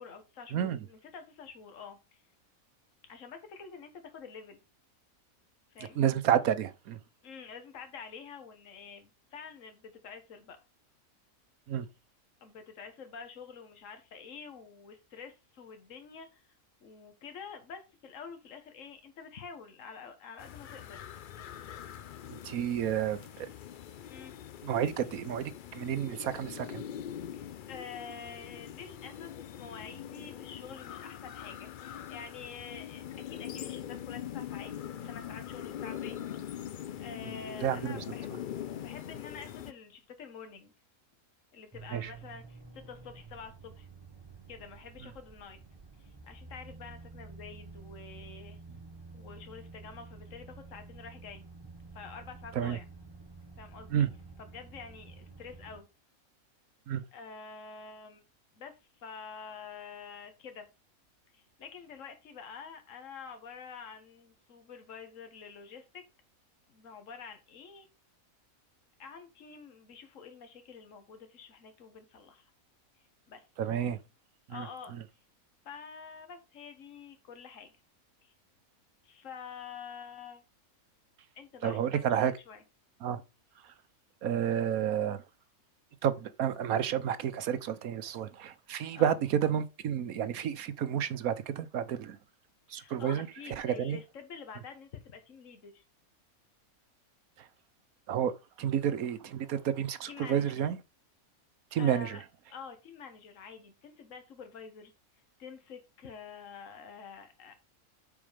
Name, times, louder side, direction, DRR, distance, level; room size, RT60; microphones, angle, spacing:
voice 1, 0.0-2.2 3.0-4.6 5.7-6.0 7.2-10.6 12.4-16.5 16.8-21.0 24.1-24.3 27.3-29.3 29.6-34.7 35.1-36.2 37.0-38.4 38.8-40.7 41.5-43.9 44.5-45.6 46.0-48.6 49.1-51.4 51.9-52.9 53.6-54.1 54.4-55.9 57.1-58.2 58.6-58.7 59.0-60.7 61.3-66.0 66.7-67.9 69.0-72.5 73.3-73.4 74.5-74.9 75.6-77.7 78.2-78.3 79.0-80.4 81.3-82.6 88.9-89.2 92.7-95.8 100.1-100.5 101.8-102.2 102.5-104.9 105.4-107.6, left 6 dB, 60° left, 1.7 m, -47 dB
voice 2, 5.9-7.0 11.7-11.9 22.3-23.5 24.6-26.8 37.6-38.0 41.9-42.1 52.5-52.8 53.9-54.1 56.9-57.0 73.6-74.0 74.5-74.7 81.6-82.3 83.0-83.2 84.2-85.2 86.0-92.2 92.7-93.3 93.6-94.0 97.4-97.5 98.1-98.3 98.6-100.8 101.7-102.2, right 9 dB, 80° right, 1.3 m, -30 dB
sound 1, 20.4-39.7, left 10 dB, 85° left, 0.4 m, -43 dB
sound 2, 41.7-55.8, right 3 dB, 20° right, 1.1 m, -50 dB
7.2 x 5.0 x 5.1 m
omnidirectional pair, 1.5 m